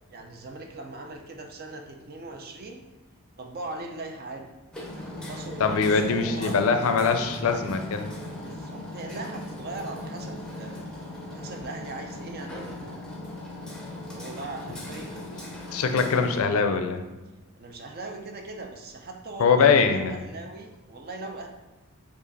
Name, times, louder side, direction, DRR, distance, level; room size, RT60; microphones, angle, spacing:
voice 1, 0.1-2.8 3.4-4.5 5.2-6.6 8.4-10.9 11.3-13.0 14.1-15.2 17.6-21.5, right 2 dB, 45° right, 3 dB, 0.5 m, -40 dB
Hammer, 4.7-16.4, left 1 dB, 5° left, 0.7 m, -38 dB
voice 2, 5.6-8.1 15.7-17.0 19.4-20.2, left 5 dB, 65° left, 7 dB, 0.4 m, -22 dB
5.0 x 2.5 x 3.9 m, 1.1 s
head